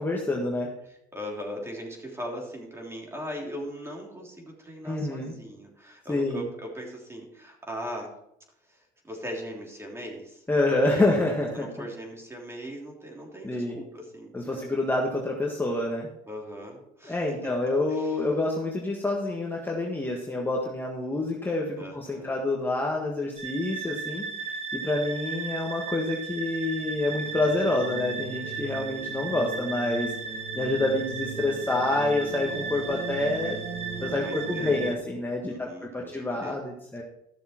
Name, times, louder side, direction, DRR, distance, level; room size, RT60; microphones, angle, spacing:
voice 1, 0.0-0.7 4.8-5.3 6.1-6.4 10.5-11.7 13.4-13.8 14.3-16.1 17.0-24.3 24.7-30.1 30.5-33.6 34.0-35.7 35.9-37.0, left 2 dB, 10° left, -2 dB, 1.6 m, -27 dB
voice 2, 0.9-8.2 8.7-11.1 11.5-14.6 16.3-17.5 17.9-18.2 21.8-22.4 30.5-30.8 34.2-34.8 35.4-36.6, equal, 15° right, 0 dB, 3.2 m, -39 dB
sound 1, 23.4-34.9, right 5 dB, 40° right, 1.5 m, -35 dB
13.5 x 6.7 x 4.5 m, 0.78 s
cardioid pair, 110°, 17 cm